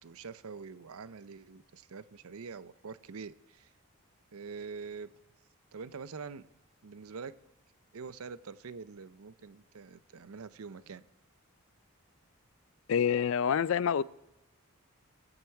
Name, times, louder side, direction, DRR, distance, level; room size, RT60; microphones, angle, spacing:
voice 1, 0.0-3.7 4.3-5.1 5.7-6.5 6.8-7.4 7.9-11.0, right 5 dB, 80° right, 15 dB, 0.6 m, -45 dB
voice 2, 12.9-14.0, left 7 dB, 65° left, 20 dB, 0.3 m, -27 dB
23.5 x 7.9 x 4.6 m, 0.94 s
head